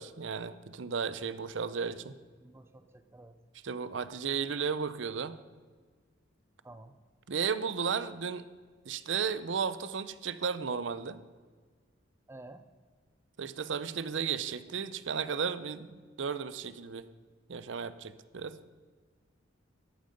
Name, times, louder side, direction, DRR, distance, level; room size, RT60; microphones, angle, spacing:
voice 1, 0.0-2.2 3.6-5.4 7.3-8.4 8.9-11.2 13.4-17.1 17.5-18.6, right 6 dB, 70° right, 14 dB, 0.6 m, -34 dB
voice 2, 2.4-3.5 6.6-7.0 12.3-12.7, right 2 dB, 15° right, 10 dB, 0.4 m, -51 dB
13.0 x 8.9 x 5.3 m, 1.5 s
head